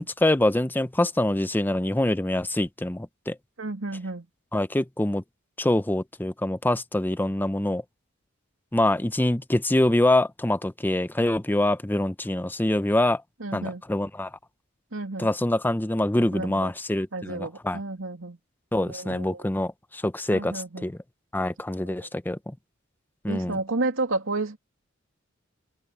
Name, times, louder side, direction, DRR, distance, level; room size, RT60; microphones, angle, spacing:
voice 1, 0.0-3.3 4.5-5.2 5.6-7.8 8.7-13.2 13.5-14.3 15.2-17.8 18.7-21.0 21.3-22.5 23.2-23.6, left 1 dB, 10° left, 0.6 m, -25 dB
voice 2, 3.6-4.3 13.4-13.8 14.9-15.3 16.3-16.7 17.1-18.4 18.8-19.4 20.3-20.9 21.8-22.1 23.3-24.6, right 2 dB, 80° right, 2.4 m, -31 dB
head